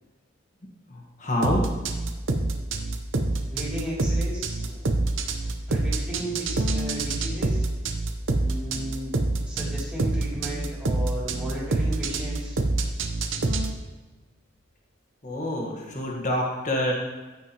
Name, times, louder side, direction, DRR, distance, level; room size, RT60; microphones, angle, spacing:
voice 1, 1.2-1.6 15.2-16.9, left 1 dB, 35° left, -1 dB, 1.5 m, -26 dB
sound 1, 1.4-13.7, right 2 dB, 70° right, 0.8 m, -26 dB
voice 2, 3.5-4.9 5.7-7.7 8.4-9.1 9.5-12.5, right 1 dB, 5° right, -8 dB, 2.9 m, -34 dB
14.0 x 6.0 x 3.0 m, 1.2 s
head